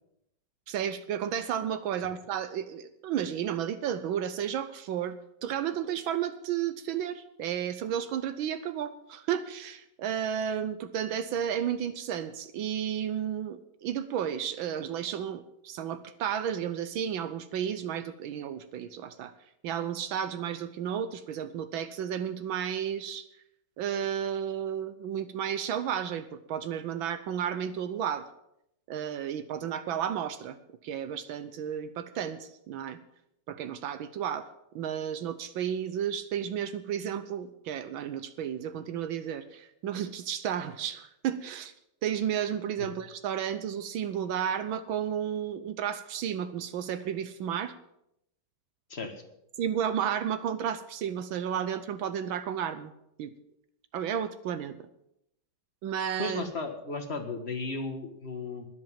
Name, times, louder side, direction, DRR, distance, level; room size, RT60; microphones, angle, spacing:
voice 1, 0.7-5.1 5.4-19.3 19.6-23.3 23.8-28.3 28.9-30.6 30.8-33.0 33.5-34.5 34.7-41.7 42.0-47.7 49.6-52.9 53.2-53.3 53.9-54.8 55.8-56.5, right 9 dB, 80° right, 11 dB, 1.5 m, -32 dB
voice 2, 56.2-58.7, left 3 dB, 35° left, 6 dB, 1.7 m, -35 dB
12.5 x 10.5 x 7.4 m, 0.80 s
omnidirectional pair, 2.2 m